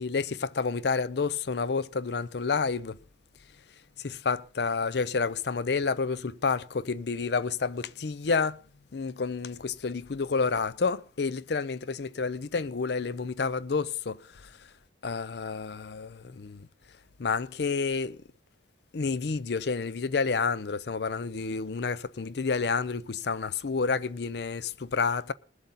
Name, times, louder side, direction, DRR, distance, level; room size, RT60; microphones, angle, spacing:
voice 1, 0.0-3.0 4.0-8.6 8.9-14.2 15.0-16.7 17.2-18.2 18.9-25.3, left 4 dB, 60° left, 0.5 m, -29 dB
21.5 x 7.8 x 4.1 m
head